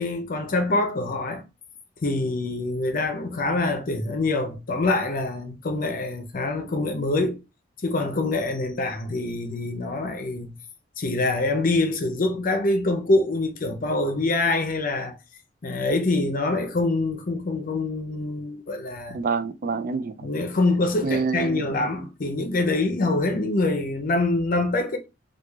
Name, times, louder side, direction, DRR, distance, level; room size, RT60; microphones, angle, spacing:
voice 1, 0.0-1.4 2.0-7.4 7.8-10.5 11.0-15.1 15.6-19.2 20.2-25.0, left 2 dB, 50° left, 0.6 m, -25 dB
voice 2, 19.1-20.3 21.0-21.9, right 5 dB, 50° right, 0.4 m, -27 dB
4.6 x 2.4 x 2.3 m
head